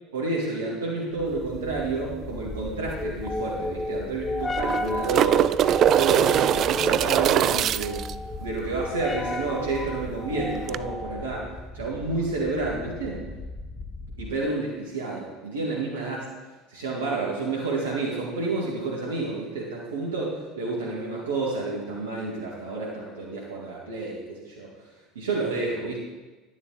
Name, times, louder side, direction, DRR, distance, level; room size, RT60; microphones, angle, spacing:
voice 1, 0.1-5.5 5.9-8.0 8.4-11.5 11.7-13.2 14.2-16.3 16.7-24.9 25.2-26.0, right 3 dB, 80° right, -4 dB, 2.0 m, -30 dB
sound 1, 1.2-14.5, left 2 dB, 20° left, 1.0 m, -34 dB
sound 2, 2.9-3.0 3.3-3.4 4.4-8.1 10.7-10.8, right 11 dB, 45° right, 0.3 m, -22 dB
11.0 x 10.0 x 4.0 m, 1.2 s
hypercardioid pair, 70°, 0 cm